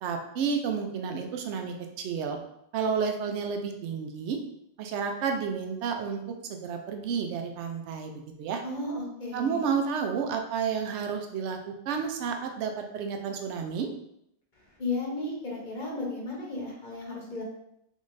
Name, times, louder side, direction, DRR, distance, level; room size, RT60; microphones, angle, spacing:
voice 1, 0.0-2.4 2.7-4.4 4.8-6.2 6.5-8.1 8.4-8.6 9.3-13.9, right 6 dB, 80° right, 4 dB, 0.9 m, -31 dB
voice 2, 8.6-9.7 14.8-17.4, left 2 dB, 45° left, -2 dB, 1.0 m, -34 dB
3.7 x 3.6 x 2.6 m, 0.76 s
omnidirectional pair, 1.2 m